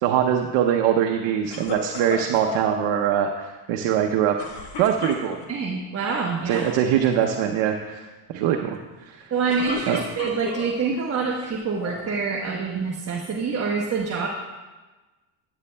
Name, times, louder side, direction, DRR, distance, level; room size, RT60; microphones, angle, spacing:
voice 1, 0.0-4.4 4.8-5.4 6.5-8.1 8.3-9.3 9.9-10.0, right 9 dB, 80° right, 3 dB, 0.7 m, -22 dB
sound 1, 1.5-2.7 4.4-5.7 6.4-6.7 7.0-7.4 9.3-10.8 11.4-12.1, left 4 dB, 60° left, 1.5 m, -35 dB
voice 2, 5.5-6.6 9.3-14.3, right 5 dB, 30° right, -2 dB, 1.1 m, -26 dB
13.5 x 9.2 x 2.2 m, 1.2 s
cardioid pair, 110°, 46 cm